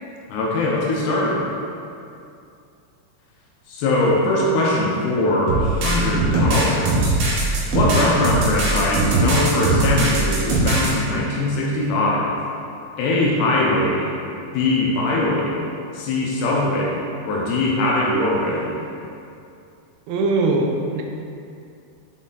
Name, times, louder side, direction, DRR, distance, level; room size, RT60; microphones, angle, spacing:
voice 1, 0.3-1.4 3.7-7.1 7.7-12.4 13.0-14.1 14.5-15.6 15.9-18.8, left 2 dB, 80° left, -3 dB, 2.5 m, -21 dB
sound 1, 5.5-10.9, right 2 dB, 65° right, 2.6 m, -20 dB
voice 2, 20.1-21.0, right 3 dB, 80° right, 1 dB, 2.5 m, -21 dB
7.1 x 4.2 x 3.8 m, 2.5 s
omnidirectional pair, 5.4 m